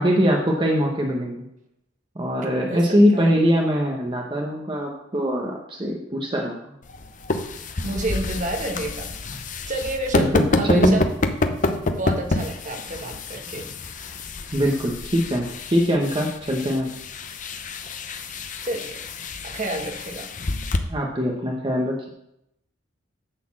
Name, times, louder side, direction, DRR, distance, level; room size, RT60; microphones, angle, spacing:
voice 1, 0.0-1.5 2.1-6.7 10.1-11.0 14.5-16.9 20.9-22.1, equal, 25° right, 0 dB, 1.1 m, -22 dB
sound 1, 6.8-20.8, left 2 dB, 40° left, 0.7 m, -28 dB
voice 2, 7.8-9.1 9.7-11.1 12.0-13.7 18.6-19.0 19.4-20.3, right 2 dB, 40° right, 3 dB, 1.3 m, -30 dB
9.9 x 4.3 x 7.3 m, 0.81 s
head